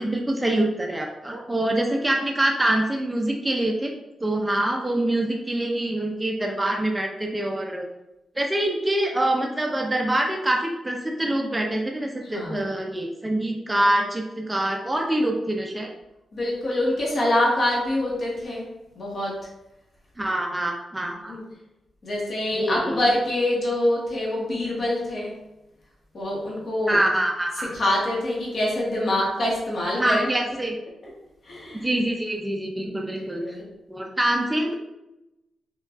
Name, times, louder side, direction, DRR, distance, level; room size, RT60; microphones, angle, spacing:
voice 1, 0.0-3.9 4.2-7.9 8.4-15.9 20.2-21.4 22.6-23.0 26.9-27.7 30.0-30.7 31.7-33.4 33.9-34.7, right 1 dB, 10° right, 1 dB, 0.3 m, -25 dB
voice 2, 12.2-12.7 16.3-18.7 18.9-19.4 21.2-21.4 22.0-25.3 26.1-27.0 27.5-30.3 31.4-31.9 32.8-33.6, left 1 dB, 50° left, -4 dB, 1.0 m, -25 dB
4.7 x 2.3 x 2.4 m, 0.93 s
wide cardioid pair, 130°, 0 cm